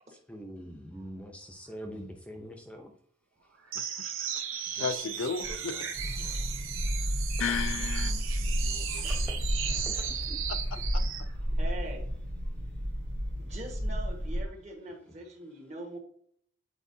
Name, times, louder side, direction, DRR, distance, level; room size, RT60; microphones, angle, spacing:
voice 1, 0.1-2.9 3.4-3.6 5.3-5.4 5.7-5.9 6.2-6.6 8.8-8.9 9.7-10.4 11.5-11.6, equal, 5° left, 0.6 m, -45 dB
voice 2, 3.7-5.9 7.4-8.1 10.9-11.0, left 6 dB, 75° left, 0.4 m, -34 dB
sound 1, 3.7-11.3, right 8 dB, 80° right, 0.8 m, -36 dB
sound 2, 4.2-7.8 8.1-10.9, equal, 10° right, 1.0 m, -53 dB
sound 3, 6.0-14.4, equal, 60° right, 1.1 m, -32 dB
voice 3, 11.6-12.1 13.4-16.0, right 1 dB, 35° right, 1.4 m, -43 dB
8.2 x 4.5 x 2.7 m
head